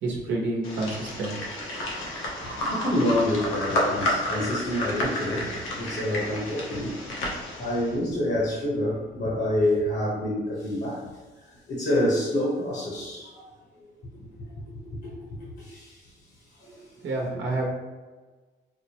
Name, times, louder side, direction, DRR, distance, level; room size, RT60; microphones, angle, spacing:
voice 1, 0.0-1.4 1.7-2.0 17.0-17.7, right 2 dB, 75° right, -2 dB, 0.9 m, -29 dB
sound 1, 0.6-7.9, left 1 dB, 90° left, 0.9 m, -31 dB
voice 2, 2.6-7.0 7.6-11.1 11.4-13.4 14.1-14.5 15.0-16.1 16.5-16.8, left 1 dB, 60° left, -5 dB, 1.1 m, -28 dB
4.8 x 2.1 x 2.9 m, 1.3 s
cardioid pair, 90°, 20 cm